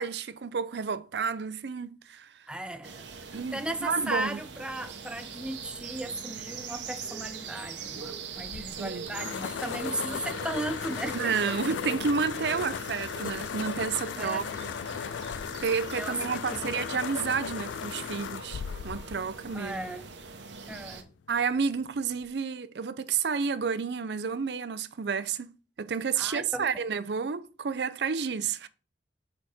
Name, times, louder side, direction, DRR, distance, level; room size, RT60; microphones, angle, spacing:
voice 1, 0.0-2.5 3.3-4.4 8.8-9.2 11.1-14.4 14.9-15.2 15.6-19.8 21.3-25.5 25.8-28.7, right 5 dB, 65° right, 0.5 m, -31 dB
voice 2, 2.5-3.0 3.3-11.6 14.2-14.5 15.9-16.7 19.5-20.1 20.7-21.1 26.2-26.7, right 1 dB, 5° right, 0.6 m, -36 dB
sound 1, 2.8-21.0, right 5 dB, 85° right, 1.0 m, -42 dB
sound 2, 8.4-20.2, left 7 dB, 90° left, 0.3 m, -37 dB
6.3 x 4.2 x 4.9 m
head